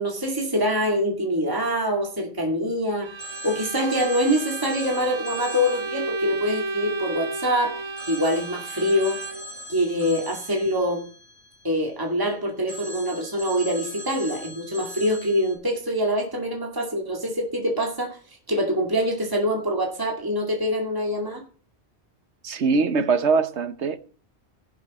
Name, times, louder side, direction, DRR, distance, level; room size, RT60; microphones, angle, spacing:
voice 1, 0.0-3.2 3.4-9.2 9.7-11.0 11.6-18.2 18.5-21.4, equal, 20° right, 2.3 m, -25 dB
Bowed string instrument, 3.0-9.6, right 3 dB, 40° right, 0.4 m, -33 dB
Telephone, 3.2-7.5 8.0-12.2 12.7-15.6, equal, 45° left, 7.4 m, -41 dB
voice 2, 22.4-24.0, right 4 dB, 80° right, 1.3 m, -22 dB
16.5 x 6.9 x 4.3 m
omnidirectional pair, 1.1 m